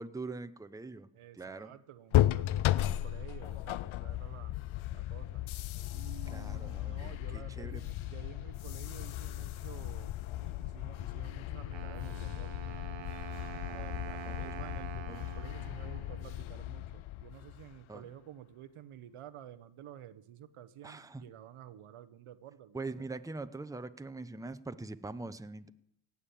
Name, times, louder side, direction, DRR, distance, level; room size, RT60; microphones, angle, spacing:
voice 1, 0.0-1.1 1.3-1.7 6.3-7.8 14.2-14.4 15.1-15.2 17.9-18.1 20.8-21.2 22.7-25.7, right 3 dB, 5° right, 11 dB, 0.7 m, -43 dB
voice 2, 1.1-4.5 4.9-5.4 5.9-12.7 13.6-22.8, right 11 dB, 85° right, 10 dB, 1.0 m, -51 dB
sound 1, 2.1-17.8, left 14 dB, 70° left, 0.5 m, -35 dB
Wind instrument woodwind instrument, 11.7-16.7, right 10 dB, 60° right, 0.8 m, -46 dB
17.5 x 7.3 x 8.5 m, 0.76 s
cardioid pair, 75°, 50 cm